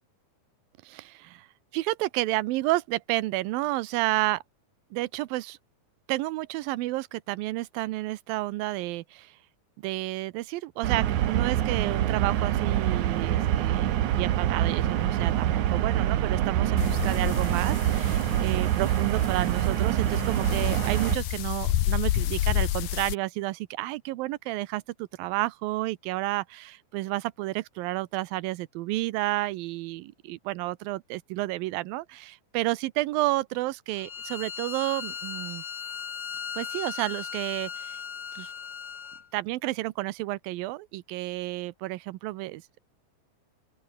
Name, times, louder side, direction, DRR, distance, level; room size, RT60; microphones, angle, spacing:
voice 1, 0.8-1.5 1.7-4.4 4.9-5.6 6.1-9.4 9.8-35.6 36.5-38.0 38.4-38.5 39.3-42.8, right 18 dB, 80° right, 2.5 m, -31 dB
sound 1, 10.8-21.2, right 12 dB, 60° right, 2.5 m, -25 dB
sound 2, 16.8-23.1, left 13 dB, 80° left, 3.1 m, -30 dB
Bowed string instrument, 33.9-39.3, left 7 dB, 40° left, 1.8 m, -37 dB
open air
omnidirectional pair, 4.2 m